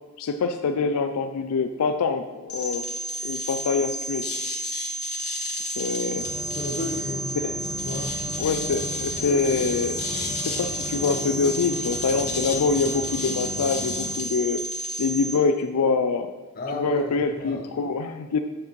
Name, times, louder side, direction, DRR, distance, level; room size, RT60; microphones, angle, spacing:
voice 1, 0.2-2.8 3.2-4.2 5.8-6.3 7.4-7.6 8.4-14.6 15.0-16.3 16.7-18.4, left 4 dB, 85° left, 7 dB, 0.4 m, -25 dB
sound 1, 2.5-15.4, equal, 70° left, 1.3 m, -31 dB
sound 2, 6.1-14.1, left 1 dB, 25° right, 1.0 m, -37 dB
voice 2, 6.6-7.3 7.8-8.1 16.6-17.7, left 1 dB, 40° left, 1 dB, 1.0 m, -32 dB
7.3 x 7.0 x 3.1 m, 1.2 s
head